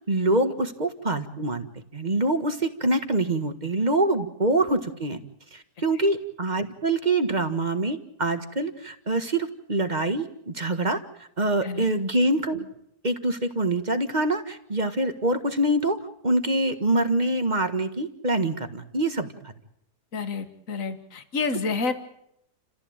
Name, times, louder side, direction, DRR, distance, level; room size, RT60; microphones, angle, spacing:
voice 1, 0.1-1.7 1.9-5.2 5.5-11.0 11.4-12.7 13.0-16.0 16.2-19.5, right 2 dB, 30° right, 8 dB, 1.6 m, -25 dB
voice 2, 20.1-21.9, left 4 dB, 60° left, 9 dB, 2.0 m, -29 dB
30.0 x 15.0 x 8.8 m, 0.77 s
omnidirectional pair, 1.6 m